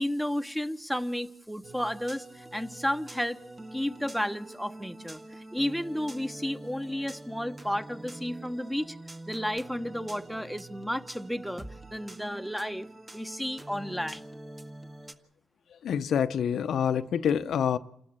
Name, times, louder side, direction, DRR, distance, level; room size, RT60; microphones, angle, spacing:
voice 1, 0.0-3.4 3.7-9.0 9.3-11.6 11.9-12.9 13.1-14.2, equal, ahead, 1.1 m, -32 dB
sound 1, 1.6-15.1, right 1 dB, 20° right, 1.6 m, -45 dB
voice 2, 15.8-17.8, left 8 dB, 75° left, 0.7 m, -26 dB
28.0 x 13.0 x 8.0 m
cardioid pair, 65°, 0 cm